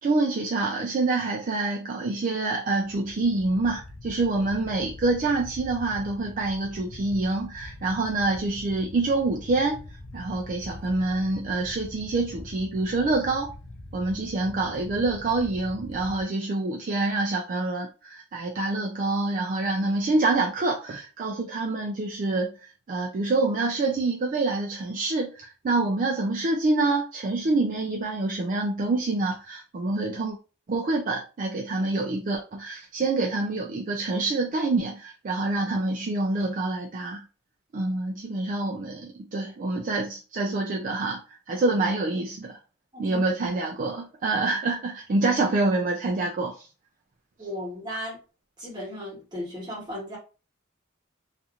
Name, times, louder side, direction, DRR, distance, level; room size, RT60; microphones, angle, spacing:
voice 1, 0.0-9.8 10.1-13.5 13.9-30.4 30.7-37.2 37.7-41.2 41.5-42.6 43.0-46.7, right 2 dB, 40° right, 1 dB, 0.3 m, -26 dB
sound 1, 2.8-16.2, left 1 dB, 65° left, 0.5 m, -43 dB
voice 2, 47.4-48.2 48.6-50.2, left 1 dB, 20° right, -5 dB, 1.3 m, -35 dB
2.8 x 2.5 x 2.4 m, 0.34 s
head